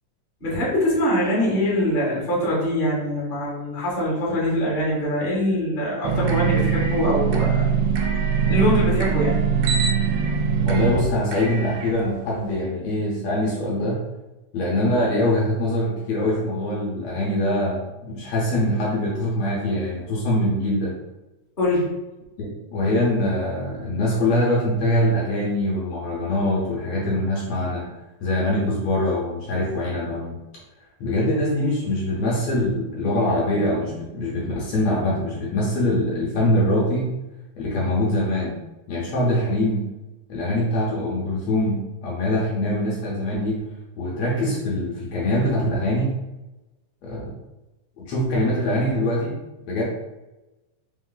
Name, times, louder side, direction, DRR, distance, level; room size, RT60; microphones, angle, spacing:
voice 1, 0.4-7.7 8.5-9.3 21.6-21.9, equal, 50° left, -7 dB, 0.5 m, -23 dB
sound 1, 6.0-12.6, right 6 dB, 85° right, 2.1 m, -22 dB
voice 2, 10.6-14.0 14.5-20.9 22.4-27.9 28.2-30.4 31.0-37.1 37.6-38.6 38.9-39.8 40.3-43.6 44.0-46.2 47.0-47.3 48.0-49.4 49.6-49.8, left 1 dB, 70° left, -4 dB, 1.7 m, -23 dB
5.3 x 2.1 x 3.8 m, 1.0 s
omnidirectional pair, 3.7 m